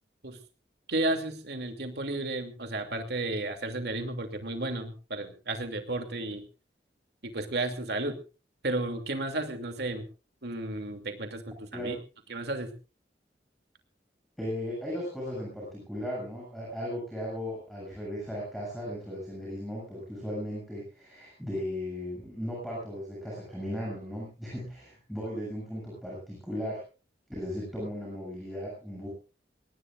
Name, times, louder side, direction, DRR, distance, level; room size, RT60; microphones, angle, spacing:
voice 1, 0.9-6.4 7.2-8.2 8.6-10.0 10.4-12.0 12.3-12.7, right 2 dB, 65° right, 5 dB, 2.7 m, -33 dB
voice 2, 14.4-26.8 27.3-29.1, equal, ahead, -4 dB, 7.4 m, -36 dB
23.0 x 18.5 x 2.5 m, 0.33 s
head